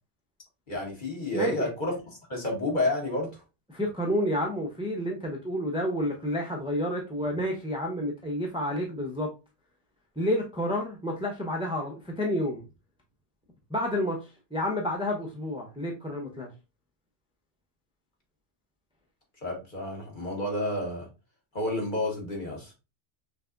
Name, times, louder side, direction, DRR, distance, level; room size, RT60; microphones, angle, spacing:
voice 1, 0.7-1.9 2.3-3.3 19.4-21.1 21.5-22.7, left 1 dB, 40° left, 1.5 m, -30 dB
voice 2, 1.3-1.7 3.7-9.3 10.2-12.6 13.7-16.5, equal, 5° right, 0.5 m, -30 dB
5.7 x 2.5 x 2.5 m
omnidirectional pair, 1.3 m